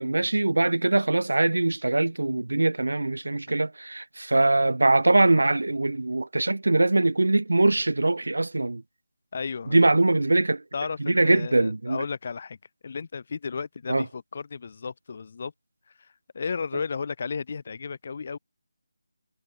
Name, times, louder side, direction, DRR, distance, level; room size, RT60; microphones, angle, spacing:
voice 1, 0.0-8.8 9.7-10.6 11.0-12.0 13.9-14.0, right 2 dB, 80° right, 1.6 m, -22 dB
voice 2, 9.3-10.0 10.7-12.6 12.8-15.5 15.9-18.4, left 5 dB, 45° left, 2.7 m, -34 dB
figure-of-eight pair, 165°, 0 cm